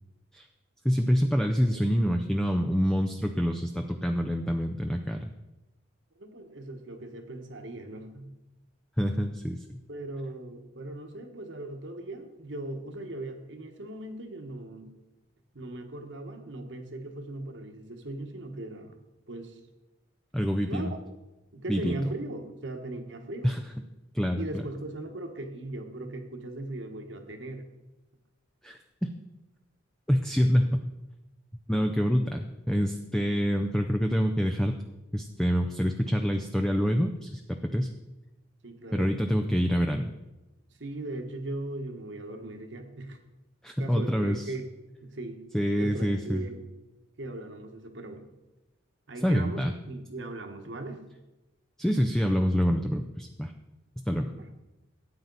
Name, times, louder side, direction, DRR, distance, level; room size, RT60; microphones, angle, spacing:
voice 1, 0.8-5.3 9.0-9.6 20.3-20.9 21.7-22.0 23.4-23.6 24.1-24.5 28.6-29.1 30.1-30.8 31.7-34.7 35.1-37.9 38.9-40.1 43.6-44.4 45.5-46.4 49.2-49.7 51.8-53.5 54.1-54.3, equal, 5° left, 4 dB, 0.5 m, -26 dB
voice 2, 6.2-8.3 9.9-14.9 15.5-19.0 19.3-19.6 20.7-21.0 21.5-23.5 24.4-27.7 38.6-39.1 40.8-43.2 43.8-44.7 45.0-45.4 45.8-46.6 47.2-48.3 49.1-51.0 54.3-54.4, right 2 dB, 65° right, 5 dB, 1.3 m, -38 dB
13.0 x 9.0 x 4.0 m, 1.0 s
head